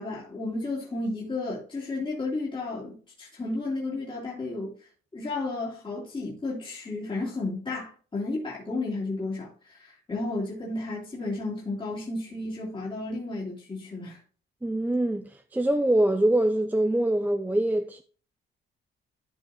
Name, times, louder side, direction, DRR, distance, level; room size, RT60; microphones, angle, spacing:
voice 1, 0.0-4.8 5.1-14.2, left 2 dB, 25° left, 3.1 m, -33 dB
voice 2, 14.6-18.0, right 1 dB, 10° right, 0.5 m, -24 dB
13.0 x 4.6 x 3.0 m
cardioid pair, 90°, 20 cm